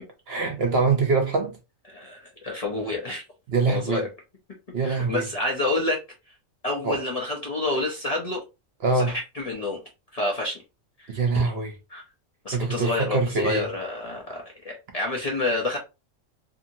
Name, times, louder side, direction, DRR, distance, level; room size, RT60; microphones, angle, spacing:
voice 1, 0.3-1.6 3.5-4.0 4.7-5.2 6.8-7.0 8.8-9.1 11.1-11.7 12.5-13.7, right 4 dB, 55° right, 0.9 m, -24 dB
voice 2, 1.9-3.2 3.7-4.1 4.8-6.0 6.6-8.4 8.9-9.8 10.1-10.6 11.0-11.2 11.9-12.0 12.4-15.8, left 2 dB, 40° left, 0.6 m, -28 dB
2.7 x 2.7 x 2.6 m
omnidirectional pair, 1.3 m